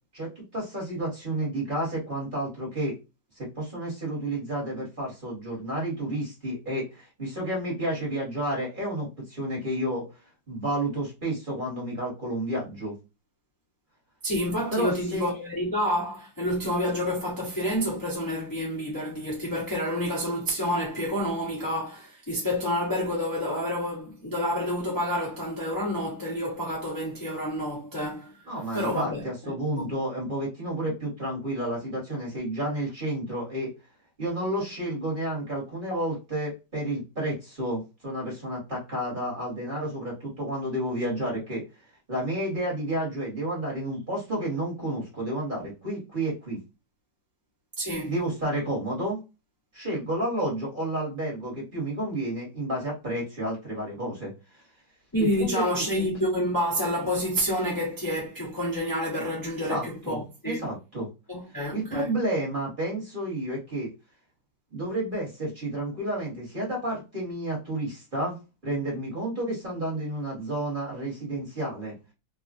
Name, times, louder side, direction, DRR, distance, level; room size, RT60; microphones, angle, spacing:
voice 1, 0.1-2.9 3.4-10.0 10.5-13.0 14.7-15.3 28.5-33.7 34.2-41.6 42.1-46.6 48.1-49.2 49.7-54.6 55.2-56.1 59.7-60.2 60.4-61.1 61.7-63.9 64.7-68.4 68.6-72.0, right 1 dB, 30° right, 1.2 m, -31 dB
voice 2, 14.2-28.3 28.7-29.8 47.8-48.1 55.1-60.7 61.3-62.1, equal, 20° left, 0.5 m, -29 dB
3.2 x 2.3 x 2.5 m
omnidirectional pair, 2.2 m